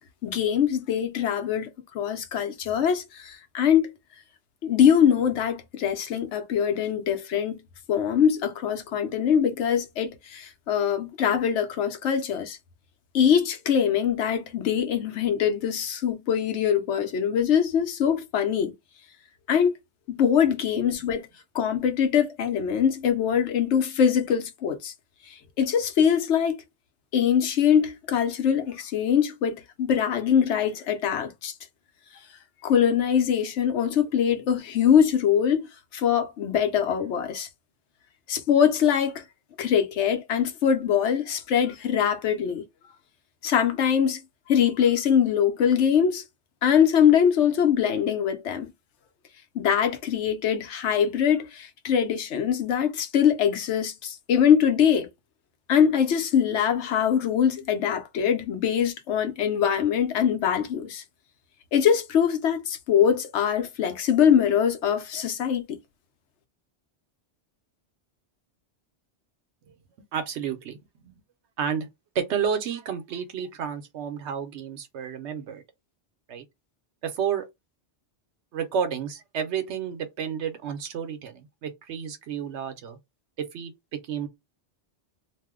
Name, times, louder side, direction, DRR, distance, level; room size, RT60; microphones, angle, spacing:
voice 1, 0.2-1.7 1.9-3.9 4.6-7.6 7.9-12.6 13.1-18.7 19.5-19.7 20.2-21.3 21.5-24.9 25.6-26.6 27.1-31.5 32.6-35.7 35.9-37.5 38.3-39.2 39.6-42.6 43.4-44.2 44.5-46.2 46.6-48.7 49.5-55.1 55.7-61.0 61.7-65.8, left 8 dB, 85° left, 1.0 m, -23 dB
voice 2, 70.1-70.8 71.0-71.1 71.6-71.9 72.1-75.6 76.3-76.4 77.0-77.5 78.5-83.0 83.4-84.3, right 7 dB, 80° right, 1.0 m, -31 dB
2.6 x 2.1 x 3.5 m
omnidirectional pair, 1.2 m